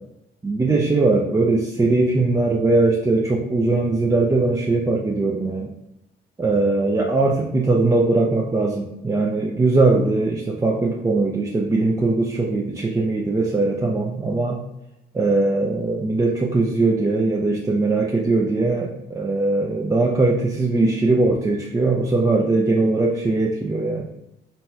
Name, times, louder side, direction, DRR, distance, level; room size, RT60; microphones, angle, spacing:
voice 1, 0.4-5.7 6.4-14.6 15.1-24.1, right 3 dB, 15° right, -1 dB, 0.4 m, -20 dB
4.0 x 2.3 x 4.3 m, 0.89 s
cardioid pair, 90°, 20 cm